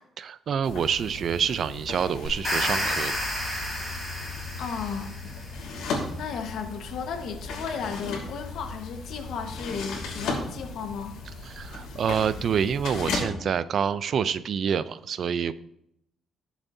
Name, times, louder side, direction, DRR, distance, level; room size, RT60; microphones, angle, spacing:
voice 1, 0.2-3.2 11.4-15.5, right 7 dB, 50° right, 14 dB, 0.5 m, -27 dB
sound 1, 0.6-13.2, left 3 dB, 85° left, 2.7 m, -36 dB
sound 2, 2.2-5.4, equal, 15° left, 4.8 m, -30 dB
voice 2, 4.6-5.1 6.2-11.2, left 6 dB, 70° left, 5 dB, 1.3 m, -34 dB
18.5 x 7.2 x 2.7 m, 0.75 s
cardioid pair, 145°, 0 cm